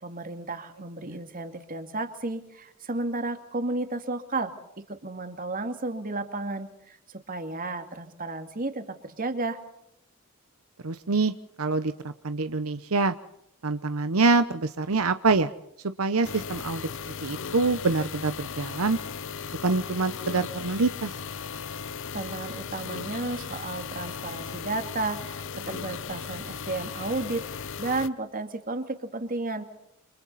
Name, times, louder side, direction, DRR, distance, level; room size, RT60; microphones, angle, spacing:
voice 1, 0.0-4.5 4.9-9.6 22.1-27.4 27.8-29.6, right 2 dB, 40° right, 7 dB, 2.5 m, -33 dB
voice 2, 10.8-11.3 11.6-13.1 13.6-15.5 16.0-16.9 17.2-19.0 19.6-21.1, right 3 dB, 80° right, 11 dB, 0.9 m, -25 dB
sound 1, 16.2-28.1, left 6 dB, 60° left, 0.8 m, -37 dB
28.5 x 26.5 x 4.2 m, 0.77 s
head